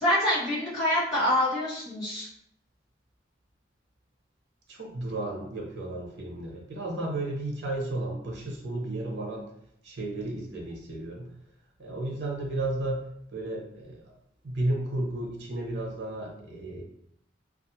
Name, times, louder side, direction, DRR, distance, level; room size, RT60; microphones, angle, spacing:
voice 1, 0.0-2.3, left 1 dB, ahead, -15 dB, 1.0 m, -26 dB
voice 2, 4.7-9.5 9.8-11.3 11.8-13.0 13.3-14.0 14.4-16.8, right 1 dB, 70° right, -2 dB, 0.8 m, -33 dB
2.5 x 2.4 x 2.7 m, 0.71 s
head